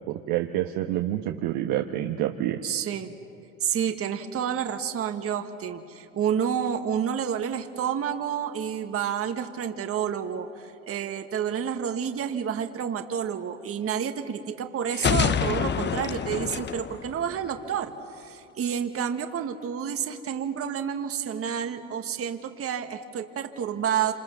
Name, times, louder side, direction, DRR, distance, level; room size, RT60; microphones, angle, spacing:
voice 1, 0.1-2.6, right 13 dB, 65° right, 4 dB, 1.4 m, -28 dB
voice 2, 2.6-3.1 3.6-24.1, right 8 dB, 35° right, 6 dB, 1.6 m, -29 dB
sound 1, 14.9-17.8, left 7 dB, 30° left, 1.0 m, -27 dB
27.5 x 27.5 x 6.9 m, 2.6 s
hypercardioid pair, 85°, 38 cm